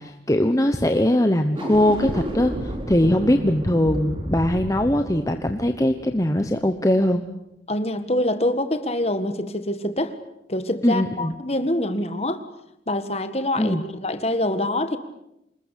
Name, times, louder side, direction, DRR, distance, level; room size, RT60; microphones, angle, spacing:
voice 1, 0.0-7.2 10.8-11.3 13.6-13.8, left 1 dB, 20° left, 6 dB, 1.1 m, -21 dB
sound 1, 1.4-6.7, equal, 30° right, 3.2 m, -32 dB
voice 2, 7.7-10.2 10.5-12.4 12.9-15.0, left 1 dB, 35° left, 10 dB, 1.8 m, -25 dB
26.5 x 20.5 x 8.4 m, 0.84 s
head